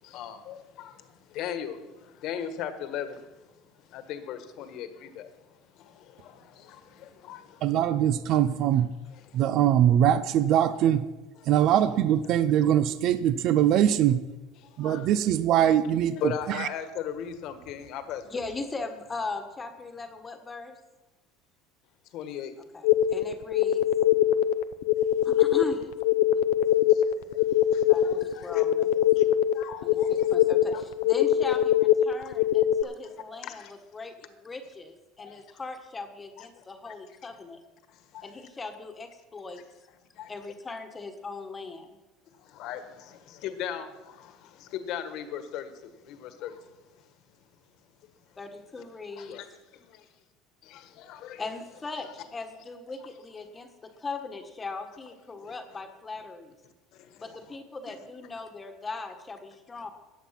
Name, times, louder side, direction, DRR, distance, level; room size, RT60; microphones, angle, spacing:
voice 1, 0.0-3.4 3.8-7.9 9.1-9.5 11.4-11.5 14.6-15.1 16.2-18.4 22.1-22.5 25.2-25.3 26.9-28.6 29.2-29.3 29.5-30.4 30.7-30.8 33.3-33.7 35.2-35.4 36.4-36.9 37.9-38.3 40.1-40.3 42.4-46.8 49.2-50.0 50.6-51.5 55.4-55.5 56.9-57.4, left 9 dB, 60° left, 9 dB, 1.5 m, -39 dB
voice 2, 7.6-8.9 9.3-11.0 11.5-14.2 14.8-16.2 16.5-16.7, right 10 dB, 55° right, 14 dB, 0.5 m, -22 dB
voice 3, 18.2-20.8 22.7-23.8 25.2-25.9 27.9-28.9 29.8-37.6 38.2-39.6 40.3-42.0 48.4-49.4 51.4-56.6 57.2-59.9, left 3 dB, 20° left, 6 dB, 1.4 m, -39 dB
sound 1, 22.8-32.8, left 12 dB, 80° left, 0.6 m, -23 dB
14.5 x 9.2 x 5.9 m, 1.1 s
supercardioid pair, 115°, 0 cm